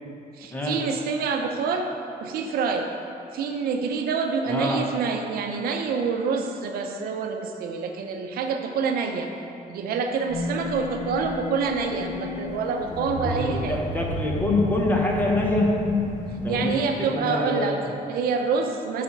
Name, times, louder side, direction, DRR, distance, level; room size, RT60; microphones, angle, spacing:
voice 1, 0.3-1.9 2.2-2.9 3.3-9.3 9.7-13.8 16.5-19.0, right 5 dB, 80° right, 4 dB, 0.6 m, -27 dB
voice 2, 4.5-4.9 13.2-15.7 16.4-16.7 17.1-17.7, left 1 dB, 10° left, -1 dB, 1.0 m, -27 dB
sound 1, 10.3-16.7, left 3 dB, 55° left, 1.3 m, -28 dB
7.0 x 4.2 x 5.9 m, 2.6 s
cardioid pair, 135°, 15 cm